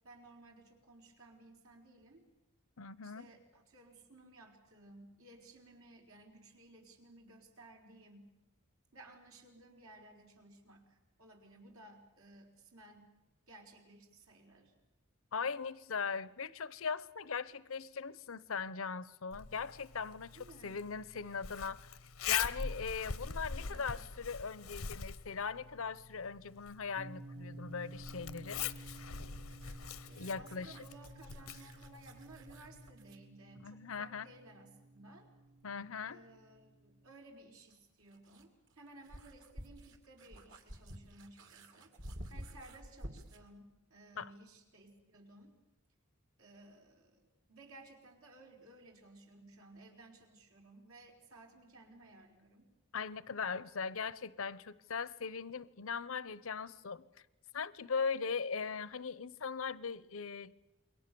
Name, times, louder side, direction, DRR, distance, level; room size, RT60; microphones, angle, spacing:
voice 1, 0.0-2.3 3.0-8.3 8.9-13.1 13.5-14.7 20.3-20.8 23.2-24.1 30.0-35.3 36.0-41.9 42.3-45.6 46.4-52.7, right 2 dB, 80° right, 4.9 m, -58 dB
voice 2, 2.8-3.2 15.3-20.3 20.6-21.9 22.3-28.6 30.2-30.7 33.6-34.3 35.6-36.2 44.2-44.3 52.9-57.0 57.5-60.5, left 5 dB, 70° left, 0.8 m, -39 dB
Zipper (clothing), 19.3-32.9, left 7 dB, 85° left, 1.0 m, -43 dB
sound 1, 27.0-37.1, right 1 dB, 30° right, 1.0 m, -54 dB
sound 2, 28.7-33.3 35.6-35.7 37.7-43.5, equal, 60° right, 2.7 m, -52 dB
28.5 x 23.0 x 6.9 m
head